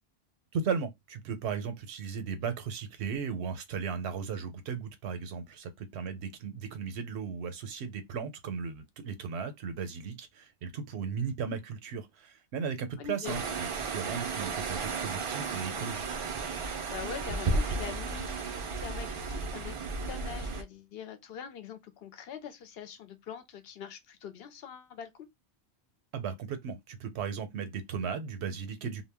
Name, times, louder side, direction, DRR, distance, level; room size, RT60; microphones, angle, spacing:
voice 1, 0.5-16.2 26.1-29.0, right 6 dB, 85° right, 0.9 m, -36 dB
voice 2, 13.0-13.6 16.9-25.1, left 8 dB, 70° left, 0.8 m, -43 dB
sound 1, 13.2-20.6, right 3 dB, 60° right, 0.3 m, -34 dB
2.1 x 2.0 x 3.3 m
omnidirectional pair, 1.1 m